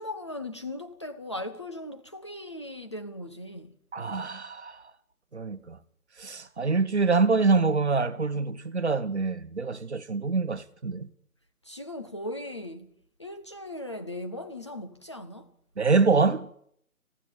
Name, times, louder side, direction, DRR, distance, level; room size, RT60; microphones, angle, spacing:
voice 1, 0.0-3.7 11.6-12.9 13.2-15.5, left 1 dB, 20° left, 0.9 m, -38 dB
voice 2, 3.9-4.8 5.3-5.8 6.2-11.1 15.8-16.5, right 4 dB, 50° right, 1.3 m, -25 dB
21.0 x 15.0 x 8.7 m
figure-of-eight pair, 150°, 44 cm